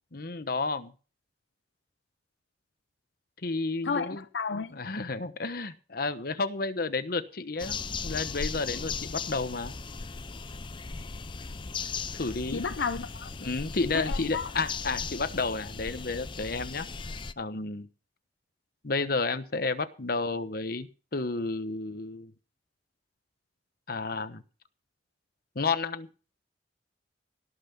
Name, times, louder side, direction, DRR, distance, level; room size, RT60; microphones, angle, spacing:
voice 1, 0.1-0.9 3.4-4.2 4.7-7.8 8.0-9.7 12.2-12.6 13.4-16.9 17.4-17.9 18.8-22.3 23.9-24.4 25.5-26.1, left 3 dB, 60° left, 1.1 m, -31 dB
voice 2, 3.8-4.8 12.5-13.3 13.9-14.5, left 5 dB, 80° left, 0.6 m, -32 dB
sound 1, 7.6-17.3, left 4 dB, 30° left, 0.5 m, -37 dB
17.5 x 5.9 x 7.0 m
head